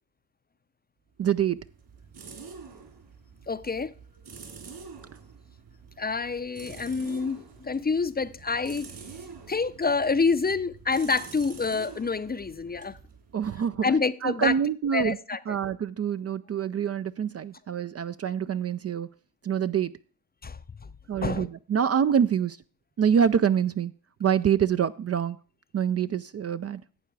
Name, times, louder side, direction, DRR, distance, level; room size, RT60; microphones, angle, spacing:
voice 1, 1.2-1.6 13.3-13.8 14.2-15.2 15.5-19.1 19.4-19.9 21.1-22.6 23.0-23.9 24.2-25.4 25.7-26.8, right 8 dB, 35° right, 0.4 m, -25 dB
sound 1, 1.2-13.9, right 5 dB, 55° right, 3.4 m, -47 dB
voice 2, 3.5-3.9 6.0-8.9 9.5-13.0 13.8-14.5 14.9-15.6 20.4-20.6 21.2-21.5, left 4 dB, 20° left, 0.6 m, -27 dB
11.5 x 8.1 x 4.7 m
supercardioid pair, 60°, 44 cm